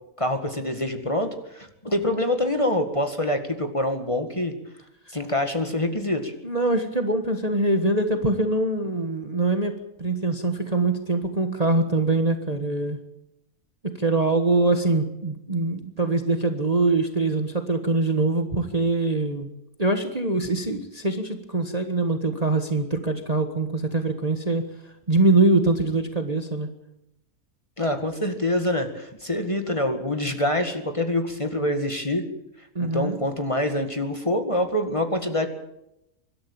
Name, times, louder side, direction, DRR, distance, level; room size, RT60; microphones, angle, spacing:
voice 1, 0.2-4.5 5.1-6.3 27.8-32.2 32.8-35.5, left 1 dB, 20° left, 6 dB, 2.0 m, -25 dB
voice 2, 6.4-13.0 13.8-19.5 19.8-24.6 25.1-26.7 32.7-33.2, right 2 dB, 25° right, 6 dB, 1.5 m, -23 dB
24.5 x 12.5 x 8.7 m, 0.85 s
omnidirectional pair, 1.6 m